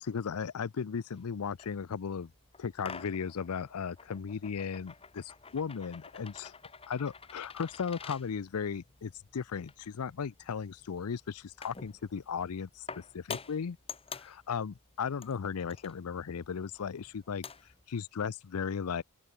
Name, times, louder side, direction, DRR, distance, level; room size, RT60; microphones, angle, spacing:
voice 1, 0.0-2.3 2.6-6.5 6.9-13.8 14.1-17.4 17.9-19.0, left 6 dB, 75° left, 0.5 m, -36 dB
sound 1, 1.1-17.8, left 5 dB, 25° left, 1.5 m, -49 dB
open air
head